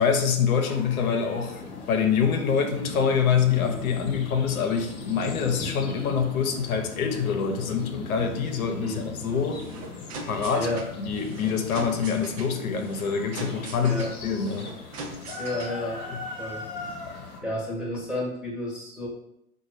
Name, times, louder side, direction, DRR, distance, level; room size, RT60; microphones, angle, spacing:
voice 1, 0.0-9.6 10.3-10.7 11.0-14.7, left 6 dB, 70° left, 4 dB, 0.9 m, -25 dB
sound 1, 0.6-17.4, left 4 dB, 40° left, 1.2 m, -39 dB
sound 2, 9.4-15.9, right 3 dB, 25° right, 0.4 m, -41 dB
voice 2, 10.5-10.9 13.8-14.1 15.4-16.7 17.4-19.1, left 1 dB, ahead, -6 dB, 0.9 m, -31 dB
4.1 x 2.6 x 4.8 m, 0.81 s
hypercardioid pair, 115°, 44 cm